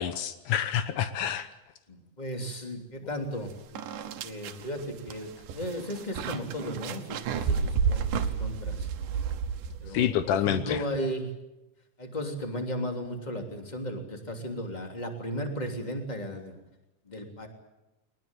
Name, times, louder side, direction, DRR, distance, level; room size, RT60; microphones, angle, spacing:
voice 1, 0.0-1.5 9.9-10.8, left 9 dB, 80° left, 11 dB, 2.5 m, -27 dB
voice 2, 1.9-8.9 9.8-11.3 12.0-16.5 17.0-17.5, equal, 15° left, 3 dB, 3.0 m, -35 dB
sound 1, 3.3-3.4 3.8-10.1, right 6 dB, 85° right, 2.7 m, -31 dB
22.0 x 20.5 x 9.0 m, 0.95 s
omnidirectional pair, 3.6 m